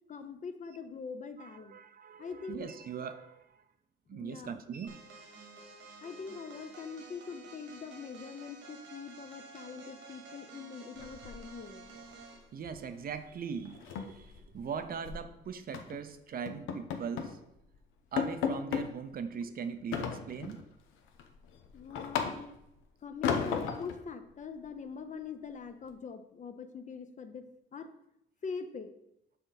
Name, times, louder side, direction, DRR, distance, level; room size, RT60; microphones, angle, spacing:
voice 1, 0.1-1.8 2.2-2.7 4.1-4.6 6.0-11.9 21.7-22.5 23.0-27.5 27.7-27.9 28.4-28.9, left 5 dB, 40° left, 9 dB, 0.6 m, -43 dB
voice 2, 1.4-3.6 4.1-5.0 12.5-17.4 18.1-20.6, right 6 dB, 50° right, 10 dB, 0.5 m, -40 dB
sound 1, 4.9-12.5, right 4 dB, 75° right, 1.4 m, -51 dB
sound 2, 11.0-11.8 12.1-12.3 12.6-12.9 13.1-13.2 13.6-15.2 15.7-16.0 16.5-17.4 17.7-17.8 18.2-18.9 19.9-20.6 21.1-22.7 23.2-24.0, left 7 dB, 90° left, 0.7 m, -35 dB
6.7 x 3.8 x 4.0 m, 0.82 s
cardioid pair, 90°, 20 cm